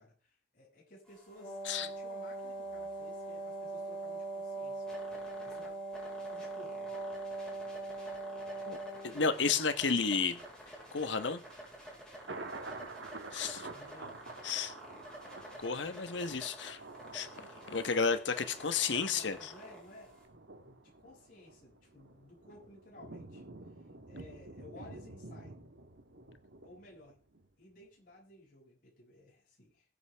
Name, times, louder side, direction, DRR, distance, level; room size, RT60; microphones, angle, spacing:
voice 1, 0.0-4.9 5.4-5.8 6.3-6.9 13.7-14.2 19.1-20.2 20.6-23.4 24.1-25.6 26.6-27.2 27.6-29.8, left 1 dB, 50° left, 7.1 m, -56 dB
sound 1, 1.0-20.2, equal, 5° left, 4.9 m, -52 dB
Wind instrument woodwind instrument, 1.3-9.3, right 2 dB, 25° left, 5.1 m, -41 dB
voice 2, 9.0-10.4 10.9-11.4 13.3-13.7 14.4-14.7 15.6-16.8 17.1-17.3 17.7-19.4, left 5 dB, 75° left, 1.2 m, -32 dB
Thunder, 10.3-27.5 27.8-27.9, right 3 dB, 75° right, 1.6 m, -50 dB
20.5 x 8.5 x 3.5 m
head